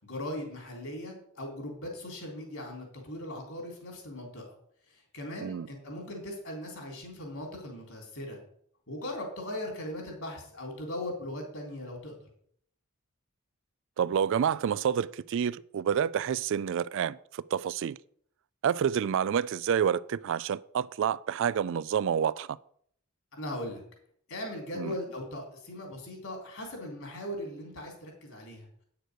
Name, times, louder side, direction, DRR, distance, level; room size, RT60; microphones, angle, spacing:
voice 1, 0.0-4.5 4.9-8.4 8.9-12.3 23.4-23.8 24.3-28.7, left 1 dB, 65° left, 3.7 m, -39 dB
voice 2, 14.0-18.0 18.6-22.5 24.8-24.9, right 8 dB, 55° right, 0.3 m, -28 dB
9.2 x 6.7 x 6.4 m
head